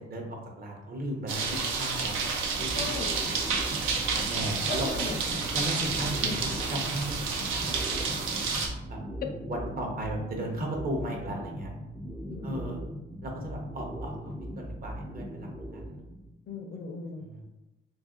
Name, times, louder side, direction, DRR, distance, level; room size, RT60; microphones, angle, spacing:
voice 1, 0.1-3.1 3.8-4.9 5.5-8.1 8.9-9.0 9.5-11.7 12.4-12.8 13.2-14.1 14.6-16.0 17.2-17.4, right 1 dB, 50° right, 0 dB, 0.8 m, -36 dB
sound 1, 1.3-8.7, right 5 dB, 90° right, 0.5 m, -30 dB
sound 2, 2.6-16.3, equal, 5° right, 0.3 m, -39 dB
voice 2, 2.7-3.1 4.7-5.4 6.2-6.4 8.4-8.5 9.2-9.3 12.3-12.8 16.5-17.3, left 4 dB, 50° left, 4 dB, 0.5 m, -37 dB
2.5 x 2.3 x 3.6 m, 0.99 s
cardioid pair, 90°, 20 cm